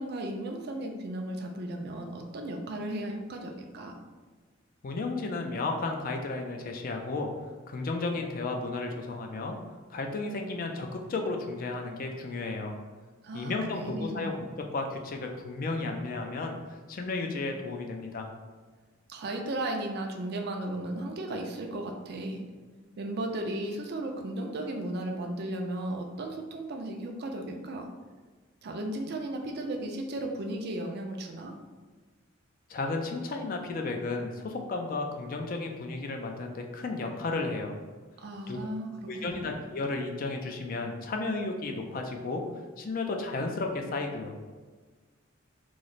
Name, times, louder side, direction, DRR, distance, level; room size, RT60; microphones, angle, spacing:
voice 1, 0.0-4.0 13.2-14.4 19.1-22.4 23.0-27.9 28.6-31.5 38.2-38.9 39.2-39.5, right 1 dB, 55° right, 3 dB, 0.4 m, -35 dB
voice 2, 4.8-7.3 7.7-9.6 9.9-12.8 13.3-16.6 16.9-18.3 32.7-37.8 38.5-38.6 39.1-42.4 42.8-44.4, left 3 dB, 45° left, 3 dB, 0.4 m, -33 dB
3.1 x 2.0 x 3.9 m, 1.4 s
head